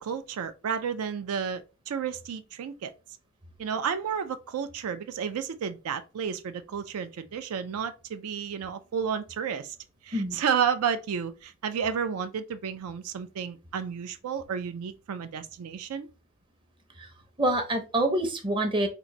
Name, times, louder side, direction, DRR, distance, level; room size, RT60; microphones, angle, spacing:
voice 1, 0.0-2.9 3.6-9.8 10.0-16.1, right 7 dB, 75° right, 0.4 m, -31 dB
voice 2, 17.4-18.9, right 1 dB, 20° right, 0.6 m, -26 dB
3.7 x 2.5 x 3.0 m
head